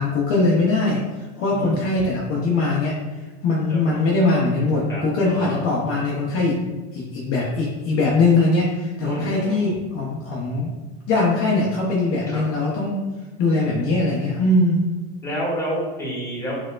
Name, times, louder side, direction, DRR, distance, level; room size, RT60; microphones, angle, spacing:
voice 1, 0.0-3.0 3.4-6.6 6.9-10.7 11.1-13.0 13.4-14.8, left 2 dB, 45° left, -3 dB, 0.6 m, -21 dB
voice 2, 1.5-1.8 3.7-4.0 4.9-5.6 9.0-9.7 12.3-12.4 15.2-16.5, equal, 10° left, -5 dB, 1.0 m, -30 dB
4.3 x 2.1 x 2.2 m, 1.2 s
supercardioid pair, 120°, 32 cm